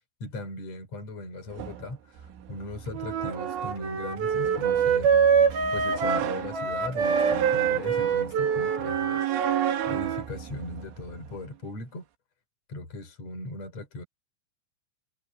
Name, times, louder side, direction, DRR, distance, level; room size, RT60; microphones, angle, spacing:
voice 1, 0.2-5.1 5.7-9.3 9.9-12.0 12.7-14.0, left 2 dB, 35° left, 7.1 m, -38 dB
sound 1, 1.5-11.5, right 10 dB, 90° right, 4.6 m, -34 dB
Wind instrument woodwind instrument, 2.9-10.2, right 6 dB, 60° right, 4.0 m, -25 dB
omnidirectional pair, 5.4 m